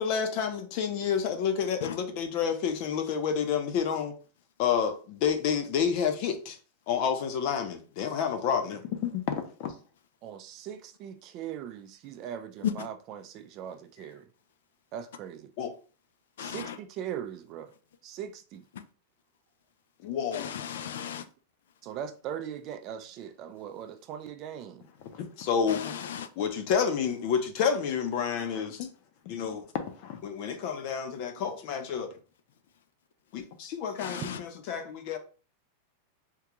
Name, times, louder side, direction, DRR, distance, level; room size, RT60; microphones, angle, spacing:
voice 1, 0.0-4.1 4.6-6.6 6.9-9.7 15.6-15.7 20.0-20.5 25.1-25.9 26.4-28.9 29.3-29.7 30.0-32.1 33.3-35.2, left 7 dB, 50° left, 0.6 m, -29 dB
voice 2, 10.2-14.3 14.9-15.4 16.4-17.7 18.0-18.6 21.8-24.8 34.1-34.4, right 9 dB, 40° right, 0.4 m, -40 dB
voice 3, 16.4-16.8 20.3-21.2 25.7-26.3 34.0-34.4, left 9 dB, 85° left, 0.4 m, -35 dB
3.6 x 2.3 x 2.9 m
supercardioid pair, 145°, 0 cm